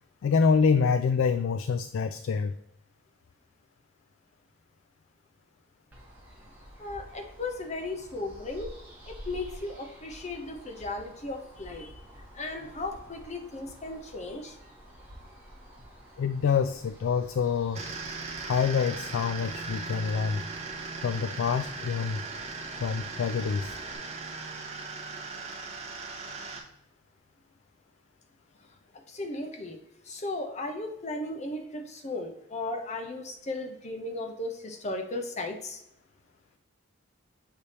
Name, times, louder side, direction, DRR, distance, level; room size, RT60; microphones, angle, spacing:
voice 1, 0.2-2.5 16.2-17.8 18.4-20.4 21.0-22.2 22.8-23.8, left 5 dB, 65° left, 10 dB, 0.3 m, -26 dB
sound 1, 5.9-23.9, equal, 10° right, 1.2 m, -50 dB
voice 2, 6.8-8.7 9.1-11.9 12.3-14.6 29.1-29.8 30.0-35.8, left 2 dB, 30° left, 4 dB, 0.7 m, -36 dB
sound 2, 17.7-26.6, right 4 dB, 30° right, 0.9 m, -38 dB
6.7 x 3.3 x 4.2 m, 0.82 s
head